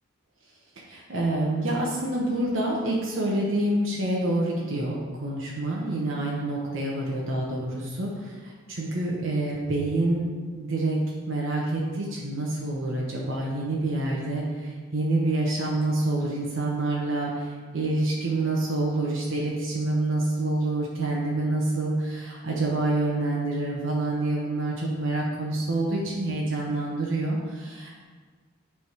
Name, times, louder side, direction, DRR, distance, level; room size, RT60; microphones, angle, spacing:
voice 1, 0.8-10.3 10.5-11.0 11.3-28.0, right 2 dB, 60° right, -4 dB, 1.0 m, -27 dB
9.2 x 3.6 x 4.6 m, 1.5 s
head